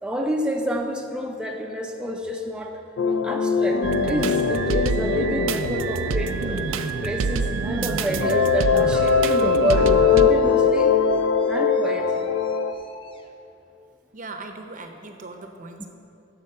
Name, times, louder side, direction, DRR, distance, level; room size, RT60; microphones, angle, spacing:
voice 1, 0.0-2.8 3.1-6.6 7.0-10.9 11.5-12.3 15.8-15.9, equal, 5° right, 1 dB, 0.5 m, -28 dB
sound 1, 3.0-7.8 8.2-12.7, left 6 dB, 75° left, 0.4 m, -22 dB
sound 2, 3.8-10.3, right 5 dB, 80° right, 0.4 m, -27 dB
sound 3, 5.5-13.3, left 1 dB, 25° left, 0.7 m, -44 dB
voice 2, 14.1-15.9, right 3 dB, 45° right, 5 dB, 0.7 m, -39 dB
13.5 x 4.5 x 5.5 m, 2.7 s
head